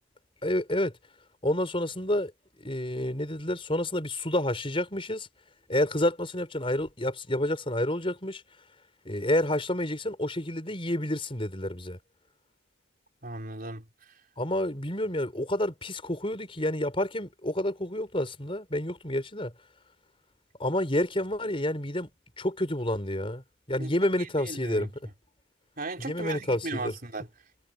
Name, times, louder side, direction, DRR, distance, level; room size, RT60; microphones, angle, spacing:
voice 1, 0.4-0.9 1.4-2.3 2.6-5.3 5.7-8.4 9.0-12.0 14.4-19.5 20.6-22.1 22.4-23.4 23.7-24.9 26.0-26.9, left 1 dB, 25° left, 5.0 m, -29 dB
voice 2, 13.2-14.2 23.8-24.9 25.8-27.3, right 2 dB, 45° right, 4.7 m, -37 dB
head